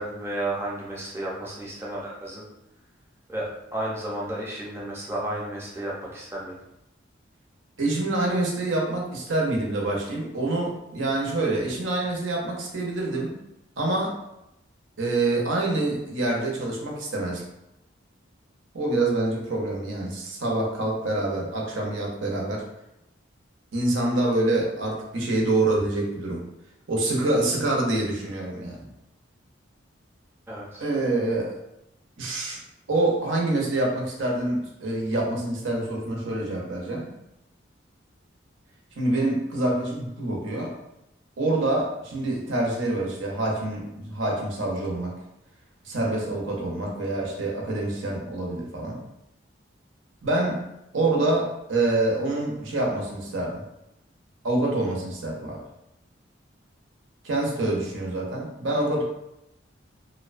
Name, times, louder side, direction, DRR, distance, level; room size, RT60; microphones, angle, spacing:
voice 1, 0.0-2.4 3.3-6.6 30.5-30.8, right 1 dB, 15° right, -5 dB, 0.5 m, -32 dB
voice 2, 7.8-13.4 13.8-14.2 15.0-17.4 18.7-22.6 23.7-26.5 26.9-28.9 30.8-31.6 32.2-32.6 32.9-37.1 39.0-40.7 41.4-45.2 45.8-49.0 50.2-50.6 50.9-53.6 54.4-55.6 57.2-59.0, right 2 dB, 80° right, -1 dB, 0.6 m, -26 dB
2.6 x 2.1 x 2.4 m, 0.87 s
head